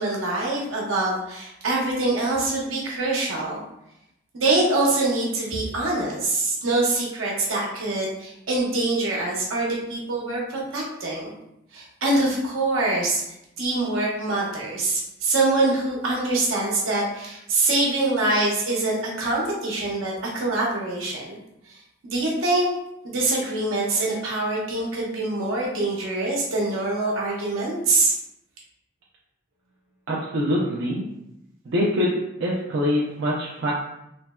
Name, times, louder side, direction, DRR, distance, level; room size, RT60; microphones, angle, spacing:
voice 1, 0.0-3.6 4.3-11.3 11.7-13.2 13.6-21.4 22.0-22.7 23.0-28.1, right 2 dB, 80° right, -4 dB, 0.8 m, -24 dB
voice 2, 30.1-31.1 31.6-33.7, equal, 60° right, -5 dB, 0.4 m, -24 dB
3.2 x 2.0 x 2.2 m, 0.83 s
head